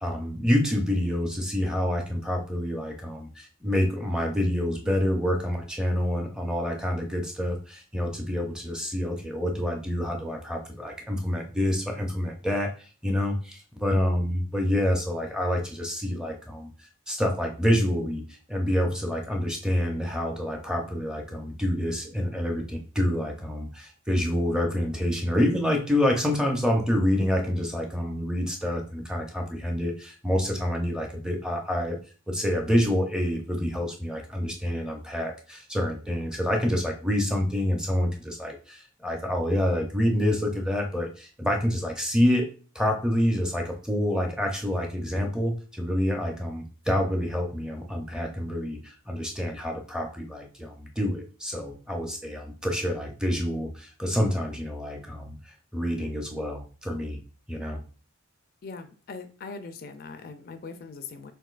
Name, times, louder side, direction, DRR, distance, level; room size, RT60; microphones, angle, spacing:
voice 1, 0.0-16.7 17.1-18.2 18.5-32.0 32.3-42.5 42.7-55.4 55.7-57.2 57.5-57.8, left 1 dB, 5° right, 2 dB, 0.5 m, -27 dB
voice 2, 58.6-61.3, left 4 dB, 45° left, 8 dB, 0.4 m, -41 dB
5.8 x 2.6 x 2.4 m, 0.37 s
head